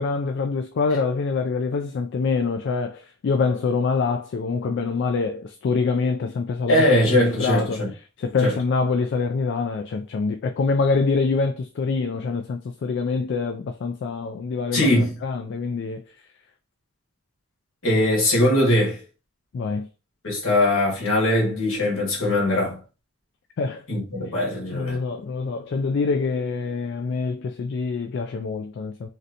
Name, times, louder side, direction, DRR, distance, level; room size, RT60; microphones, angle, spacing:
voice 1, 0.0-6.8 7.2-7.8 8.2-14.9 15.2-16.0 19.5-19.9 23.6-23.8 24.7-29.1, left 4 dB, 55° left, 0.3 m, -25 dB
voice 2, 6.7-7.9 8.4-8.5 14.7-15.1 17.8-19.0 20.2-22.8 23.9-25.0, left 1 dB, 75° left, 1.5 m, -21 dB
3.2 x 2.8 x 2.5 m
head